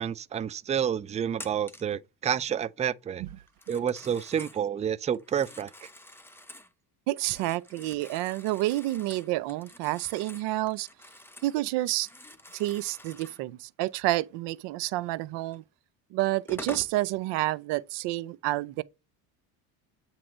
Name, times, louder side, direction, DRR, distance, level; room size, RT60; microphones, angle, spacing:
voice 1, 0.0-3.2 3.7-5.9, right 8 dB, 20° right, 0.3 m, -29 dB
Telephone, 1.3-2.0 3.5-4.6 5.1-6.7 7.1-11.6 11.9-13.4 15.5-15.6 16.2-17.0, left 1 dB, 5° left, 0.9 m, -47 dB
voice 2, 7.1-10.9 11.4-12.1 12.5-15.6 16.1-18.8, right 17 dB, 75° right, 0.7 m, -29 dB
8.6 x 3.0 x 6.1 m
supercardioid pair, 90°, 42 cm